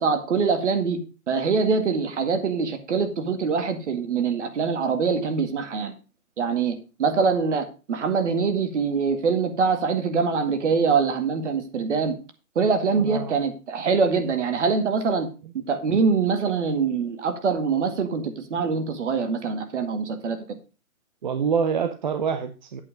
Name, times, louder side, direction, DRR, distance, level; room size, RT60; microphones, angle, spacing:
voice 1, 0.0-5.9 6.4-12.2 12.6-15.3 15.5-20.4, right 5 dB, 55° right, 7 dB, 2.1 m, -24 dB
voice 2, 13.0-13.3 21.2-22.8, right 6 dB, 35° right, 8 dB, 0.7 m, -26 dB
8.6 x 7.8 x 5.0 m, 0.33 s
hypercardioid pair, 150°, 43 cm